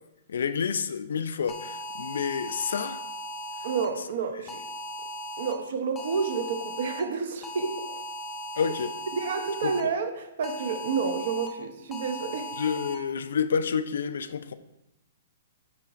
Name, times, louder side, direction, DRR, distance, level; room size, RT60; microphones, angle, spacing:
voice 1, 0.3-3.0 8.6-8.9 9.6-9.7 12.6-14.5, left 6 dB, 80° left, 0.3 m, -29 dB
sound 1, 1.5-3.9 4.5-5.5 6.0-7.0 7.4-9.8 10.4-11.5 11.9-12.9, equal, 10° left, 0.4 m, -38 dB
voice 2, 3.6-4.6 5.4-8.0 9.1-12.5, right 5 dB, 55° right, 0.6 m, -30 dB
9.8 x 3.9 x 2.5 m
hypercardioid pair, 175°, 0 cm